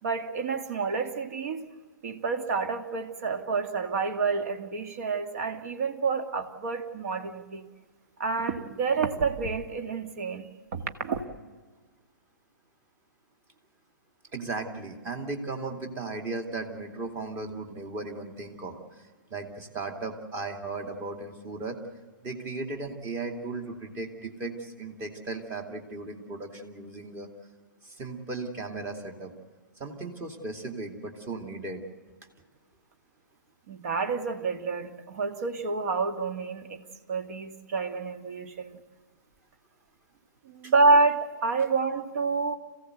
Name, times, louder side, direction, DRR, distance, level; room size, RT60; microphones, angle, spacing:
voice 1, 0.0-1.7 2.0-7.7 8.2-11.2 33.7-36.8 37.1-38.8 40.5-42.5, right 4 dB, 50° right, 6 dB, 2.0 m, -28 dB
voice 2, 14.3-21.8 22.2-27.3 27.8-29.3 29.8-31.8 40.6-40.7, right 3 dB, 20° right, 4 dB, 2.6 m, -36 dB
27.0 x 16.5 x 8.0 m, 1.5 s
figure-of-eight pair, 120°, 11 cm